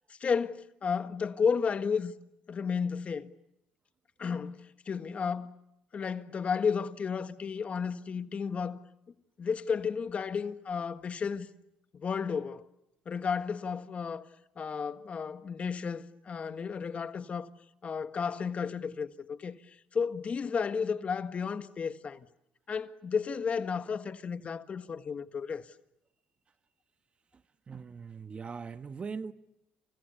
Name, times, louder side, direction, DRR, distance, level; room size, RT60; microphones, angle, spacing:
voice 1, 0.1-2.1 2.5-3.3 4.2-5.5 5.9-8.8 9.4-11.5 11.9-12.6 13.0-14.3 14.6-17.5 17.8-22.3 22.7-25.6, left 6 dB, 40° left, 1.6 m, -33 dB
voice 2, 27.7-29.3, right 5 dB, 35° right, 1.2 m, -40 dB
29.0 x 29.0 x 7.1 m
supercardioid pair, 80°, 3 cm